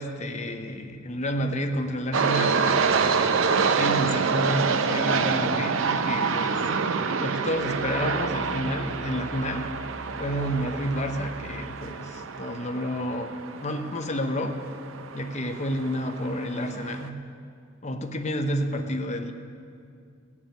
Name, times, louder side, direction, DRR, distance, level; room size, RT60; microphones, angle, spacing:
voice 1, 0.0-3.0 3.7-6.7 7.2-9.7 10.2-14.6 15.1-17.2 17.8-19.3, equal, 35° left, 6 dB, 0.9 m, -30 dB
sound 1, 2.1-17.1, right 5 dB, 70° right, 0.6 m, -27 dB
sound 2, 7.5-11.6, equal, 15° right, 2.8 m, -43 dB
17.0 x 7.3 x 9.4 m, 2.3 s
head